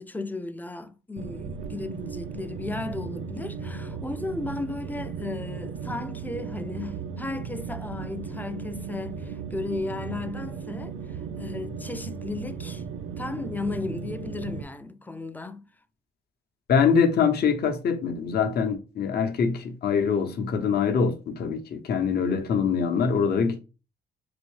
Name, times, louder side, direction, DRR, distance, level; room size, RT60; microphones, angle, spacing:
voice 1, 0.0-12.8 13.2-15.7, left 3 dB, 10° left, 0.4 m, -35 dB
sound 1, 1.2-14.6, right 6 dB, 80° right, 0.5 m, -36 dB
voice 2, 16.7-23.6, left 6 dB, 55° left, 0.7 m, -24 dB
3.9 x 2.6 x 3.1 m
cardioid pair, 90°, 20 cm